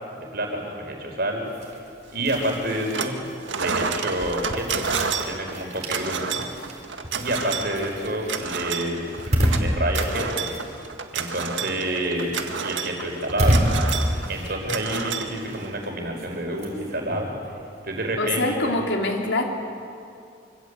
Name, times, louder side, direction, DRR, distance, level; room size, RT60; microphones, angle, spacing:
voice 1, 0.2-1.4 2.1-3.2 3.6-4.9 5.2-6.5 7.1-9.1 9.5-10.5 11.1-12.4 12.6-13.6 14.3-17.3 17.8-18.8, right 1 dB, 55° right, 2 dB, 5.1 m, -28 dB
sound 1, 1.5-11.4 11.7-18.6, equal, 40° right, 4.5 m, -29 dB
sound 2, 2.3-3.2 3.5-15.9, right 5 dB, 85° right, 1.8 m, -30 dB
voice 2, 18.2-19.4, left 2 dB, 80° left, 2 dB, 3.5 m, -24 dB
25.5 x 25.5 x 8.3 m, 2.5 s
head